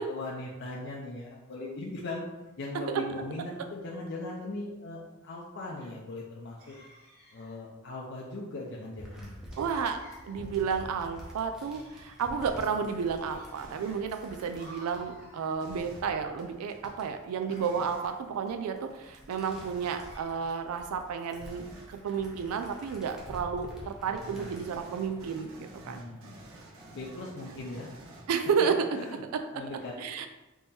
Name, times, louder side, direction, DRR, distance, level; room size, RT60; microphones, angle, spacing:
voice 1, 0.0-2.2 2.6-6.6 7.3-9.4 24.2-24.6 25.8-26.4 26.9-27.9 28.6-28.7 28.9-29.2 29.5-29.9, left 2 dB, 55° left, -3 dB, 0.5 m, -39 dB
sound 1, 6.6-7.6 9.5-10.4 11.6-12.4 13.3-14.0 14.6-15.6 17.5-18.3 20.0-20.2, right 1 dB, 40° right, 1.3 m, -53 dB
sound 2, 9.0-26.6 27.1-27.5, equal, 5° right, 0.7 m, -49 dB
voice 2, 9.6-26.0 28.3-28.8 29.3-29.6 30.0-30.3, right 6 dB, 80° right, 7 dB, 0.3 m, -32 dB
sound 3, 13.6-14.1 15.6-16.1 17.6-18.1 19.5-20.0 21.4-21.9 24.2-28.6, right 1 dB, 65° right, 1.0 m, -50 dB
3.6 x 2.9 x 4.1 m, 1.1 s
head